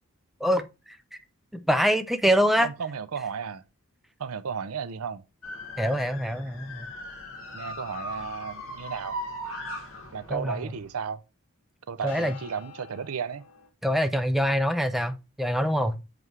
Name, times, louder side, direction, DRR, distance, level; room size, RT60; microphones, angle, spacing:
voice 1, 0.4-1.0 1.5-2.7 5.8-6.9 10.3-10.6 12.0-12.3 13.8-16.0, equal, ahead, 0.5 m, -25 dB
voice 2, 2.6-3.6 4.2-5.2 7.5-9.2 10.1-11.2 11.9-13.4, right 6 dB, 80° right, 0.6 m, -34 dB
sound 1, 5.4-10.9 12.1-13.7, left 1 dB, 60° left, 1.8 m, -40 dB
7.7 x 3.2 x 4.6 m
head